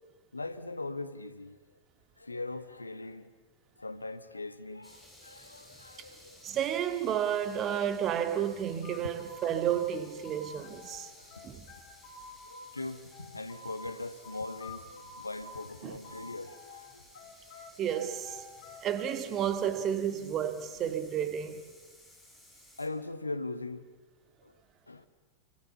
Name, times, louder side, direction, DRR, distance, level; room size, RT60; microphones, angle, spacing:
voice 1, 0.3-1.6 2.2-3.3 3.8-6.6 7.2-7.3 11.1-11.5 12.4-17.2 17.5-17.6 22.8-23.9 24.4-24.6 24.9-25.1, left 2 dB, 80° left, 1.2 m, -41 dB
sound 1, 4.8-22.9, left 1 dB, 5° left, 6.5 m, -57 dB
voice 2, 6.4-11.1 11.4-11.7 15.8-16.0 17.8-18.4 18.8-21.6, right 9 dB, 30° right, 2.0 m, -31 dB
sound 2, 8.4-11.0 11.3-13.8 14.2-16.8 17.1-19.8, left 4 dB, 45° left, 4.8 m, -50 dB
29.0 x 24.0 x 7.1 m
figure-of-eight pair, 90°, 0 cm